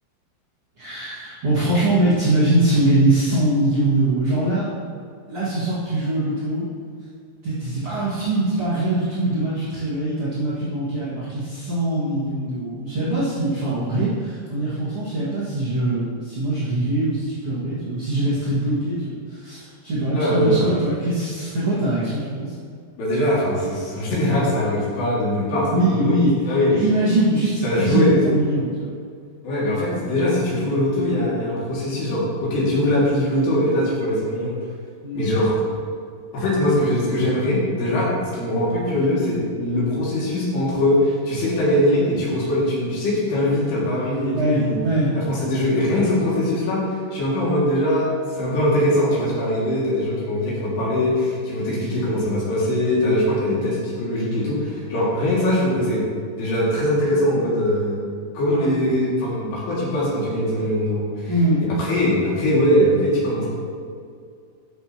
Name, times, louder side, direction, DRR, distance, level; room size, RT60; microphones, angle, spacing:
voice 1, 0.8-4.7 5.3-6.7 7.4-22.5 25.7-28.9 35.0-35.3 44.3-45.1 61.3-61.6, right 1 dB, 45° right, -9 dB, 2.1 m, -22 dB
voice 2, 20.1-20.6 23.0-26.1 26.5-26.7 27.6-28.2 29.4-34.6 35.1-35.6 36.3-44.7 45.1-48.1 48.3-56.1 56.4-58.0 58.3-61.3 61.8-63.5, left 1 dB, 85° left, -6 dB, 4.5 m, -21 dB
13.0 x 6.9 x 3.0 m, 2.2 s
omnidirectional pair, 4.6 m